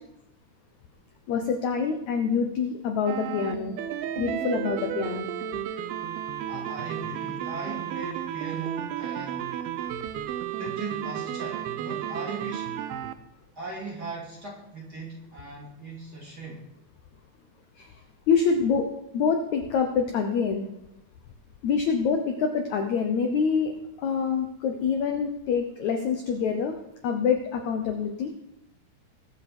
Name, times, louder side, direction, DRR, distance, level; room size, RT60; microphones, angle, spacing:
voice 1, 1.3-3.8 4.2-5.3 17.8-17.9 18.3-18.9 19.1-20.7 21.6-26.8 27.0-28.3, left 6 dB, 70° left, 4 dB, 1.7 m, -26 dB
sound 1, 3.1-13.1, right 10 dB, 80° right, 2.6 m, -33 dB
voice 2, 6.5-9.4 10.5-12.7 13.5-16.7, right 3 dB, 25° right, -3 dB, 3.1 m, -38 dB
21.0 x 8.0 x 4.4 m, 0.85 s
omnidirectional pair, 4.5 m